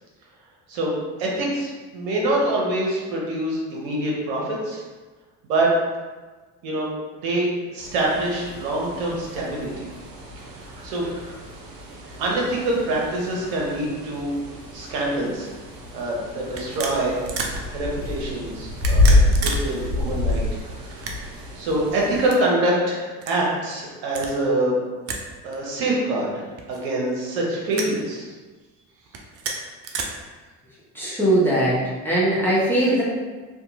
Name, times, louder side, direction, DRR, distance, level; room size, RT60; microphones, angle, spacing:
voice 1, 1.2-4.8 5.4-5.7 6.6-6.9 7.2-9.9 10.4-10.5 10.8-11.1 12.2-14.3 14.7-15.5 15.9-17.1 17.7-20.4 21.6-24.8 25.4-28.3, right 1 dB, 60° right, -3 dB, 1.0 m, -25 dB
sound 1, 7.8-22.3, left 2 dB, 85° right, 0.6 m, -27 dB
sound 2, 15.4-15.6 16.5-17.6 18.7-19.6 19.9-20.0 20.8-21.5 22.2-22.4 23.2-23.4 24.1-24.4 25.1-25.3 25.5-25.6 26.6-27.1 27.7-28.0 29.1-30.0, right 4 dB, 35° right, 0.4 m, -31 dB
voice 2, 30.9-31.8 32.0-33.0, right 1 dB, 5° left, -8 dB, 0.9 m, -20 dB
2.8 x 2.6 x 2.4 m, 1.3 s
figure-of-eight pair, 60°, 47 cm